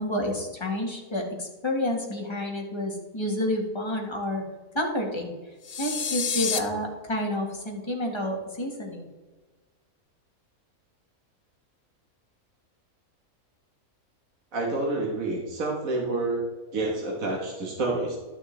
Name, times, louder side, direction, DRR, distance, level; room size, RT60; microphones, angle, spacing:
voice 1, 0.0-4.4 4.7-5.3 5.8-9.1, left 1 dB, 20° left, 0 dB, 1.5 m, -29 dB
sound 1, 5.6-6.6, left 6 dB, 70° left, 0.3 m, -28 dB
voice 2, 14.5-16.4 16.7-18.2, right 2 dB, 65° right, -2 dB, 1.8 m, -28 dB
12.0 x 6.3 x 3.3 m, 1.2 s
omnidirectional pair, 1.5 m